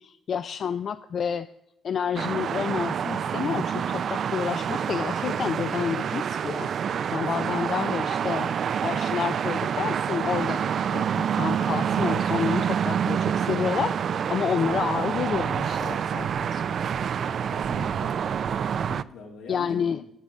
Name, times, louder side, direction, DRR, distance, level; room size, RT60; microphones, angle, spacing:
voice 1, 0.0-1.5 1.8-6.7 7.1-8.5 8.8-10.6 10.9-16.8 19.5-20.0, left 7 dB, 55° left, 13 dB, 0.4 m, -29 dB
sound 1, 2.2-19.0, right 8 dB, 60° right, 0.3 m, -27 dB
voice 2, 7.2-7.7 17.5-18.1 18.7-20.1, left 4 dB, 85° left, 1 dB, 2.6 m, -42 dB
8.2 x 7.0 x 7.5 m, 0.88 s
cardioid pair, 90°, 0 cm